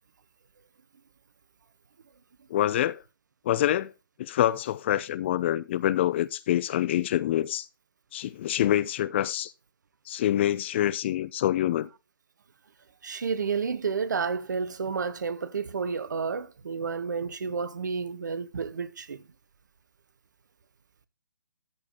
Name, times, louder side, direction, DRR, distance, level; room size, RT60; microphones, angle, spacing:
voice 1, 2.5-3.0 3.4-3.9 4.2-7.7 8.1-9.5 10.1-11.9, left 12 dB, 35° left, 0.5 m, -26 dB
voice 2, 13.0-19.2, right 5 dB, 60° right, 1.1 m, -31 dB
13.5 x 4.9 x 3.9 m
figure-of-eight pair, 135°, 11 cm